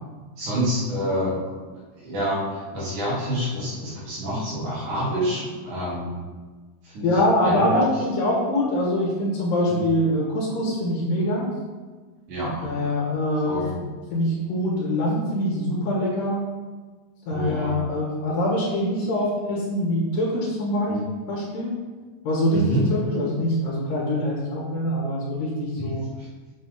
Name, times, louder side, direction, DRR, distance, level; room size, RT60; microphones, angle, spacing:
voice 1, 0.4-1.3 2.0-6.1 6.8-7.8 9.7-9.8 12.3-12.7 13.4-13.7 17.3-17.7 20.9-21.0 22.5-22.8 25.8-25.9, equal, 65° right, -9 dB, 4.2 m, -27 dB
voice 2, 7.0-11.5 12.6-13.7 14.1-16.4 17.3-21.0 21.3-21.8 22.3-26.0, left 1 dB, 90° left, -4 dB, 3.4 m, -24 dB
7.3 x 7.0 x 3.6 m, 1.4 s
omnidirectional pair, 3.7 m